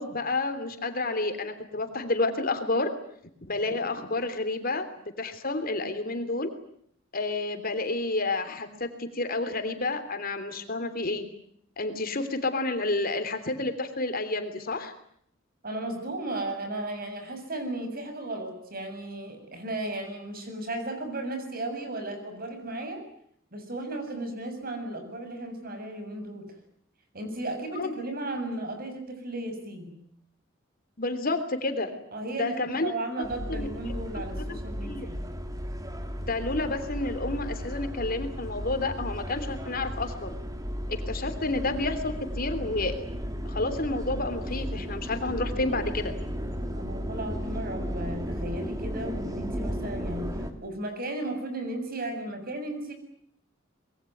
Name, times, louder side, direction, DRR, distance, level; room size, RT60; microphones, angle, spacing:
voice 1, 0.0-2.9 3.5-4.9 5.2-6.5 7.1-11.3 11.8-14.9 27.7-27.9 31.0-31.9 32.3-32.9 33.2-33.7 34.4-35.1 36.2-40.4 40.9-43.0 43.5-46.1, left 2 dB, 50° left, 8 dB, 3.3 m, -30 dB
voice 2, 15.6-23.0 23.5-26.4 27.1-29.9 32.1-35.2 46.7-50.3 50.6-52.9, right 2 dB, 50° right, 6 dB, 7.4 m, -35 dB
sound 1, 33.2-50.5, equal, 20° right, 2.7 m, -34 dB
25.5 x 22.0 x 9.4 m, 0.68 s
head